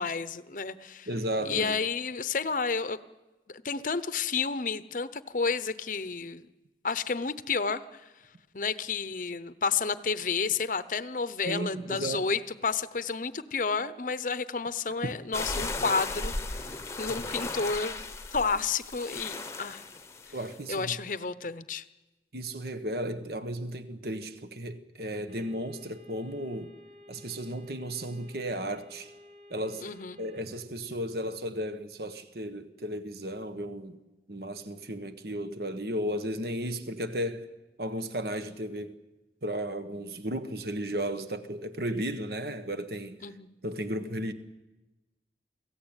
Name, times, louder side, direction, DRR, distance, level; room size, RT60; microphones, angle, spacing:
voice 1, 0.0-1.1 1.5-3.0 3.5-6.4 6.8-8.1 8.5-18.0 18.3-19.8 20.7-21.8 29.8-30.2 43.2-43.5, left 5 dB, 45° left, 0.8 m, -31 dB
voice 2, 1.1-1.8 11.4-12.3 15.0-15.1 20.3-21.0 22.3-26.7 27.1-29.1 29.5-34.0 34.3-37.5 37.8-39.0 39.4-43.2 43.6-44.3, right 1 dB, 60° right, 1.5 m, -34 dB
sound 1, 15.3-20.8, left 3 dB, 15° left, 1.0 m, -36 dB
sound 2, 25.3-30.4, left 1 dB, 35° right, 3.2 m, -53 dB
28.5 x 17.5 x 9.0 m
head